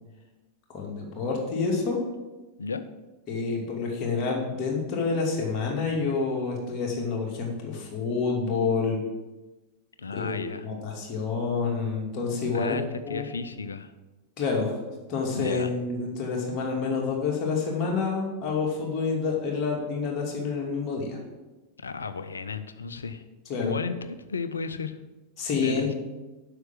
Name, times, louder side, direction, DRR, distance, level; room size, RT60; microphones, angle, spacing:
voice 1, 0.7-2.0 3.3-9.0 10.1-12.8 13.0-13.3 14.4-14.8 15.1-21.2 23.5-23.7 25.4-25.9, left 4 dB, 35° left, -1 dB, 2.6 m, -28 dB
voice 2, 10.0-10.6 12.5-13.9 15.3-15.7 21.8-23.2 23.6-24.9 25.6-25.9, left 4 dB, 75° left, 12 dB, 0.6 m, -33 dB
7.9 x 5.9 x 7.4 m, 1.1 s
figure-of-eight pair, 90°, 0 cm